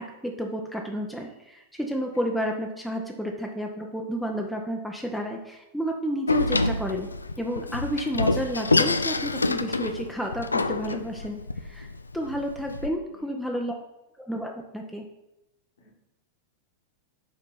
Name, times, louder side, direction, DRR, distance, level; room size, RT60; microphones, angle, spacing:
voice 1, 0.0-7.1 7.4-11.9 12.1-13.7 14.2-15.1, equal, ahead, 1 dB, 0.7 m, -31 dB
voice 2, 2.1-2.5 12.8-13.6 15.8-16.0, left 1 dB, 65° left, -1 dB, 1.5 m, -51 dB
Door, 6.3-12.9, left 2 dB, 80° left, 0.3 m, -27 dB
5.2 x 4.2 x 5.8 m, 0.91 s
figure-of-eight pair, 90°, 0 cm